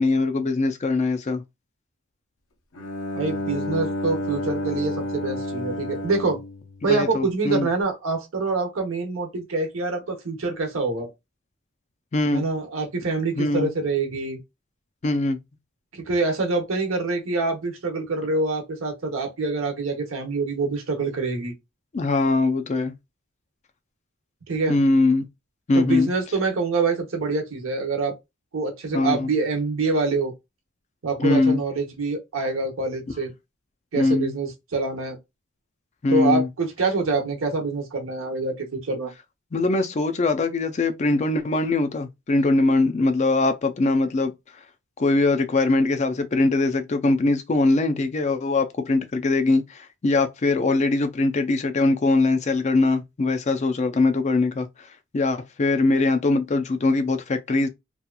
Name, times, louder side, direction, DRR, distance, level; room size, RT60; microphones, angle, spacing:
voice 1, 0.0-1.4 6.9-7.7 12.1-12.5 13.4-13.7 15.0-15.4 21.9-22.9 24.7-25.2 25.7-26.1 28.9-29.3 31.2-31.6 34.0-34.4 36.0-36.5 39.5-44.6 45.0-57.7, left 2 dB, 35° left, 0.4 m, -22 dB
Bowed string instrument, 2.7-7.6, left 1 dB, 70° left, 0.6 m, -31 dB
voice 2, 3.2-6.4 6.8-11.1 12.3-14.4 15.9-21.5 24.5-24.8 25.7-28.1 28.5-30.3 31.0-33.3 33.9-35.2 36.1-39.1, right 3 dB, 70° right, 0.9 m, -26 dB
2.8 x 2.4 x 2.2 m
head